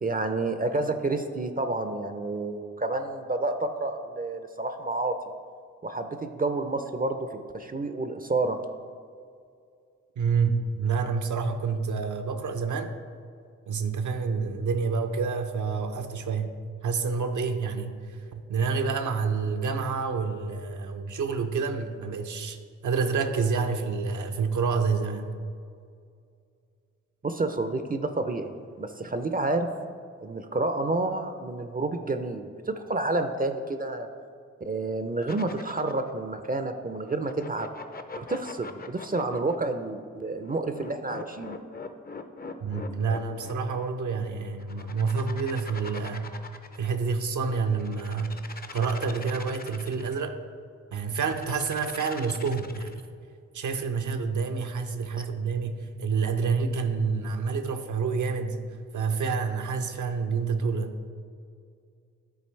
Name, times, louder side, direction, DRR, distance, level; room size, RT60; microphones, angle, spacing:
voice 1, 0.0-5.2 5.8-8.6 27.2-28.5 28.8-29.7 30.2-34.1 34.6-37.7 38.1-41.5 42.4-42.6, right 2 dB, 25° right, 8 dB, 0.5 m, -29 dB
voice 2, 10.2-12.9 13.7-22.6 22.8-25.3 42.6-46.3 46.7-48.4 48.7-50.4 50.9-52.9 53.5-58.6 58.9-61.0, right 5 dB, 65° right, 7 dB, 0.7 m, -28 dB
sound 1, 35.2-36.1 37.1-39.6 40.4-43.8 44.6-47.0 47.7-50.2 51.1-53.1, left 4 dB, 30° left, 0.6 m, -42 dB
10.5 x 3.9 x 3.2 m, 2.3 s
supercardioid pair, 40°, 32 cm